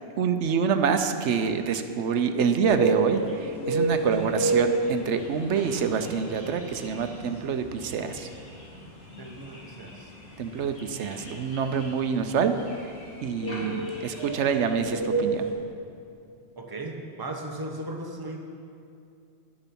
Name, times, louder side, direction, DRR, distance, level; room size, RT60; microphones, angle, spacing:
voice 1, 0.2-8.3 10.4-12.5 12.8-12.9 13.2-15.5, right 6 dB, 85° right, 8 dB, 1.0 m, -26 dB
sound 1, 2.6-15.5, right 3 dB, 85° left, 2.2 m, -32 dB
voice 2, 9.2-10.1 16.6-18.4, right 2 dB, 20° right, 2 dB, 1.0 m, -37 dB
11.5 x 8.9 x 5.9 m, 2.5 s
omnidirectional pair, 1.2 m